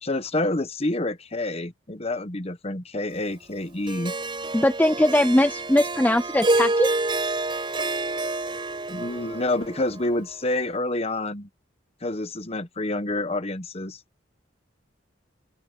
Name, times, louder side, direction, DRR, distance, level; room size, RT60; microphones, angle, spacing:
voice 1, 0.0-4.1 8.9-11.5 12.0-14.0, left 2 dB, 30° left, 1.1 m, -28 dB
Harp, 3.9-10.2, right 2 dB, 25° right, 4.8 m, -28 dB
voice 2, 4.5-6.9, left 1 dB, 10° left, 0.5 m, -20 dB
open air
head